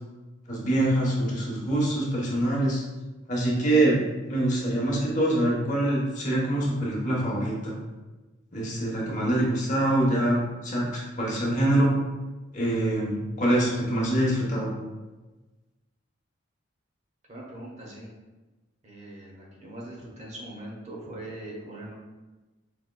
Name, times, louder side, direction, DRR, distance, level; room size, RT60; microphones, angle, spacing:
voice 1, 0.5-2.8 3.3-4.0 4.3-7.8 8.5-11.9 12.5-14.7, right 1 dB, 40° left, -3 dB, 0.9 m, -25 dB
voice 2, 17.3-18.1 18.8-21.9, right 1 dB, 35° right, -3 dB, 0.8 m, -41 dB
5.0 x 3.5 x 2.2 m, 1.2 s
head